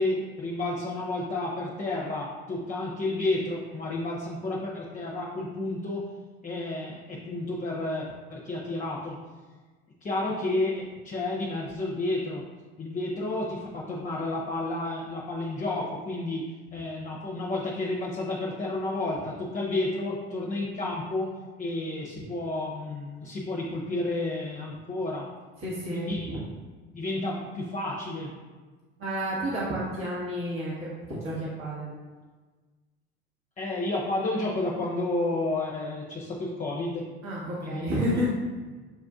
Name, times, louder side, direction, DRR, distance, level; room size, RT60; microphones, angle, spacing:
voice 1, 0.0-6.1 6.4-9.2 10.0-12.4 12.8-16.4 16.7-25.3 25.9-26.5 26.9-28.3 33.6-37.1 37.6-38.2, left 2 dB, 25° left, -4 dB, 0.8 m, -31 dB
voice 2, 25.6-26.4 29.0-31.9 37.2-38.3, equal, 45° right, -7 dB, 1.3 m, -31 dB
7.0 x 2.5 x 2.4 m, 1.4 s
hypercardioid pair, 70°, 31 cm